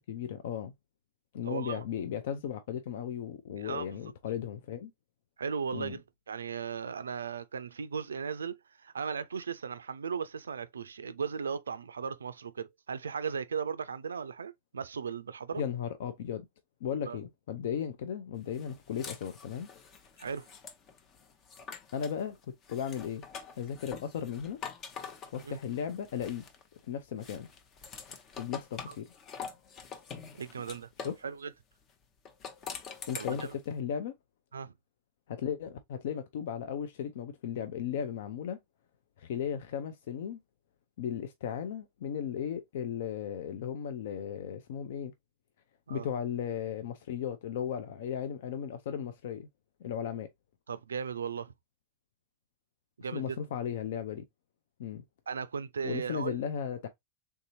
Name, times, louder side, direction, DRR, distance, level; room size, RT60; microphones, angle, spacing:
voice 1, 0.1-0.7 1.3-4.9 5.7-6.0 15.5-16.5 16.8-19.7 21.9-22.4 22.7-23.2 23.6-24.6 25.3-26.4 26.9-27.5 28.4-29.1 31.0-31.1 33.1-34.1 35.3-38.6 39.2-40.4 41.0-45.1 45.9-49.5 49.8-50.3 53.1-54.2 54.8-55.0 55.8-56.9, left 8 dB, 70° left, 0.4 m, -36 dB
voice 2, 1.4-1.8 3.6-3.9 5.4-15.6 17.1-17.2 20.2-20.5 25.4-25.6 28.9-29.0 30.3-31.5 33.1-33.5 34.5-34.7 45.9-46.1 50.7-51.5 53.0-53.4 55.3-56.4, right 6 dB, 85° right, 0.3 m, -37 dB
sound 1, 18.5-22.2 22.6-26.8 27.2-31.2 32.2-33.6, left 6 dB, 40° left, 0.7 m, -45 dB
3.4 x 2.7 x 2.7 m
hypercardioid pair, 90°, 0 cm